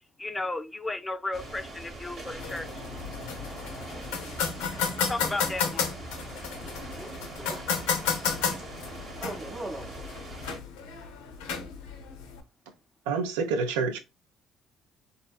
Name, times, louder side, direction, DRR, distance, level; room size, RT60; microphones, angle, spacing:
voice 1, 0.2-2.7 5.1-5.9, left 2 dB, 15° left, 0.4 m, -34 dB
sound 1, 1.3-10.6, right 2 dB, 60° right, 1.0 m, -42 dB
sound 2, 2.4-12.4, left 6 dB, 85° left, 0.4 m, -33 dB
voice 2, 7.0-8.2 9.2-10.0, right 1 dB, 35° right, 0.6 m, -40 dB
voice 3, 13.1-14.0, right 5 dB, 90° right, 0.4 m, -27 dB
2.6 x 2.2 x 2.3 m
supercardioid pair, 70°, 0 cm